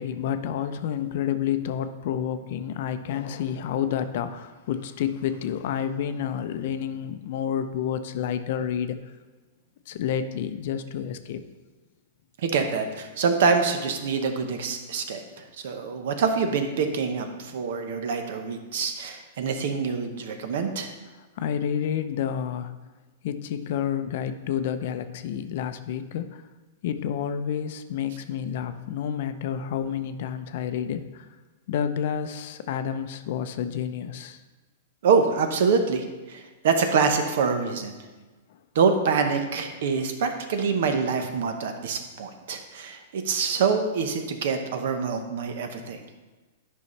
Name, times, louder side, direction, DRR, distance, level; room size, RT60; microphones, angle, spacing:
voice 1, 0.0-9.0 9.9-11.4 12.6-12.7 21.4-22.7 23.2-26.4 26.8-31.3 31.7-34.4, left 9 dB, 55° left, 10 dB, 0.5 m, -29 dB
voice 2, 12.4-20.9 35.0-38.0 38.7-46.0, right 5 dB, 65° right, 6 dB, 0.9 m, -25 dB
9.7 x 5.5 x 3.2 m, 1.2 s
hypercardioid pair, 150°, 0 cm